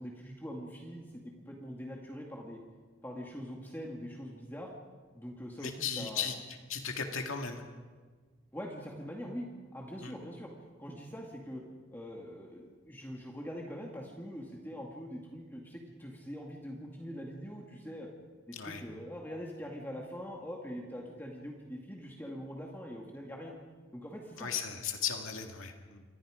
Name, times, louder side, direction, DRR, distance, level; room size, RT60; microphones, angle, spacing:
voice 1, 0.0-2.6 3.0-4.7 5.1-6.4 8.5-10.5 10.8-11.6 11.9-18.1 18.5-23.6 23.9-24.5, equal, 10° left, -1 dB, 2.1 m, -43 dB
voice 2, 5.6-6.3 6.7-7.6 10.0-10.1 18.5-18.8 24.4-26.1, left 7 dB, 90° left, 3 dB, 2.2 m, -36 dB
27.5 x 23.5 x 5.1 m, 1.5 s
head